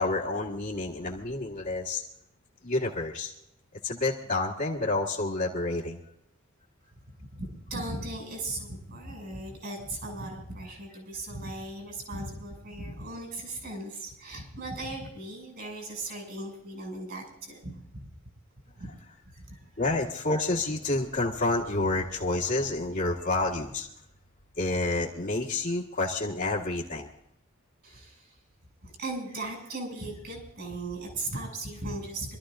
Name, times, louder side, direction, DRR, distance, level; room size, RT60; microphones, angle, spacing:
voice 1, 0.0-2.0 2.6-3.3 3.8-6.0 19.8-23.9 24.6-27.1, left 2 dB, 45° left, -6 dB, 1.6 m, -29 dB
voice 2, 7.2-18.1 18.8-18.9 19.3-19.8 27.8-28.3 28.8-32.4, right 2 dB, 55° right, 2 dB, 6.4 m, -38 dB
26.5 x 13.5 x 2.5 m, 0.77 s
head